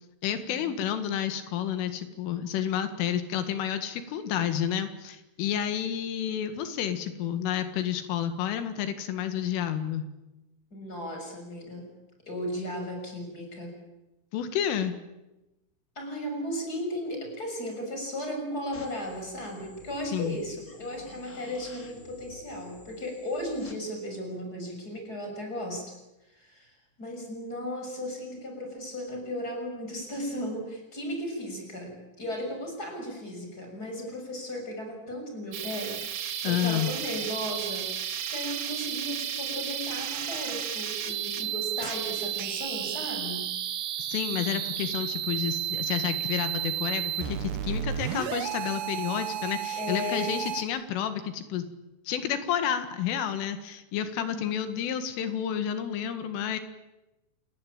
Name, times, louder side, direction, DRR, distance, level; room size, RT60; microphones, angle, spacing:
voice 1, 0.2-10.0 14.3-14.9 20.1-20.4 36.4-36.9 44.0-51.7 52.1-56.6, left 9 dB, 80° left, 9 dB, 4.3 m, -30 dB
voice 2, 10.7-11.9 12.3-13.7 16.0-25.9 26.3-43.5 49.8-50.3 54.2-54.6, equal, 20° left, 3 dB, 6.9 m, -36 dB
sound 1, 18.7-23.7, left 2 dB, 60° left, 0.8 m, -50 dB
sound 2, 35.5-50.6, right 10 dB, 65° right, 2.2 m, -33 dB
29.0 x 18.0 x 8.9 m, 0.98 s
omnidirectional pair, 5.8 m